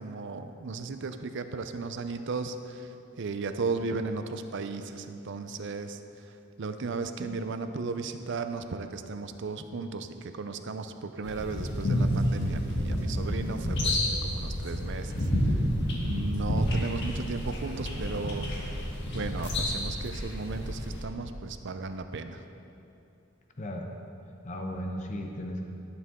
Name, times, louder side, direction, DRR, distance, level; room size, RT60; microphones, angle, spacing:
voice 1, 0.0-6.3 6.6-15.6 16.0-18.5 19.1-22.4, right 4 dB, 60° right, 9 dB, 0.5 m, -35 dB
sound 1, 11.2-21.0, equal, 55° left, 1.6 m, -30 dB
voice 2, 23.6-23.9 24.4-25.6, equal, 35° left, 2 dB, 0.8 m, -36 dB
12.5 x 8.1 x 3.6 m, 2.7 s
head